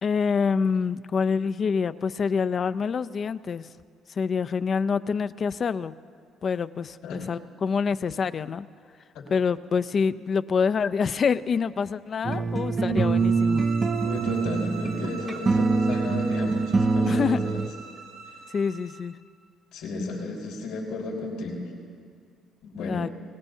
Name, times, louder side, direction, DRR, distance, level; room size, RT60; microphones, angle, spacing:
voice 1, 0.0-3.7 4.2-5.9 6.4-8.7 9.3-13.7 17.1-17.4 18.5-19.2 22.8-23.1, left 5 dB, 45° left, 14 dB, 0.4 m, -26 dB
sound 1, 12.2-17.7, right 4 dB, 30° right, 0.6 m, -24 dB
sound 2, 12.9-19.1, right 5 dB, 85° right, 4.9 m, -43 dB
voice 2, 14.0-17.6 19.7-21.7 22.6-23.1, left 2 dB, 90° left, -3 dB, 5.2 m, -33 dB
23.5 x 18.5 x 2.7 m, 2.2 s
cardioid pair, 100°, 0 cm